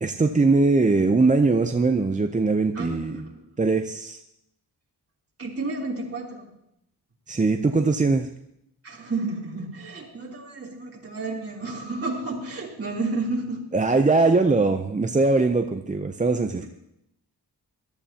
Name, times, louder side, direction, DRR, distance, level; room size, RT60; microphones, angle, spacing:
voice 1, 0.0-3.2 3.6-4.2 7.3-8.3 13.7-16.6, right 3 dB, 20° right, 6 dB, 0.5 m, -21 dB
voice 2, 2.7-3.5 5.4-6.5 8.8-13.7 16.6-16.7, right 3 dB, 40° right, -3 dB, 3.3 m, -31 dB
21.0 x 12.5 x 2.8 m, 0.80 s
wide cardioid pair, 130°, 38 cm